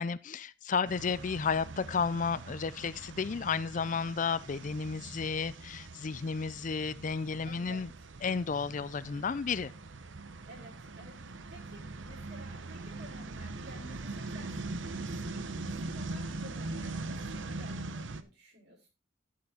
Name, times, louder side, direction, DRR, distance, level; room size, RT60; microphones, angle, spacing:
voice 1, 0.0-7.9 8.2-9.7, left 5 dB, 40° left, 0.4 m, -32 dB
sound 1, 0.8-18.2, right 2 dB, 75° right, 0.9 m, -42 dB
voice 2, 7.4-8.1 10.4-18.9, equal, 55° right, 5.8 m, -53 dB
11.5 x 7.0 x 4.2 m
head